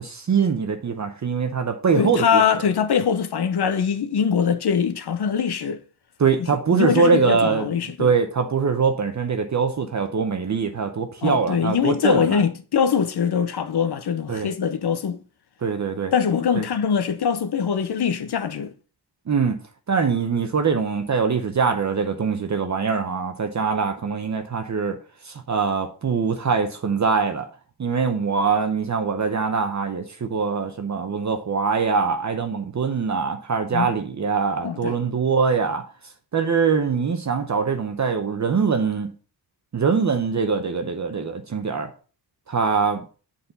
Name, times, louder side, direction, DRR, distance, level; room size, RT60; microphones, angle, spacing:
voice 1, 0.0-2.4 6.2-7.7 8.0-12.4 14.3-14.5 15.6-16.1 16.5-16.6 19.3-19.6 19.9-25.0 25.2-27.5 27.8-35.8 36.3-39.1 39.7-41.9 42.5-43.0, right 5 dB, 45° right, 0.8 m, -23 dB
voice 2, 2.0-5.8 6.7-8.1 11.2-15.2 16.1-18.7 33.7-33.9 34.6-35.0, left 7 dB, 70° left, 0.8 m, -22 dB
8.1 x 4.2 x 5.4 m
wide cardioid pair, 160°, 41 cm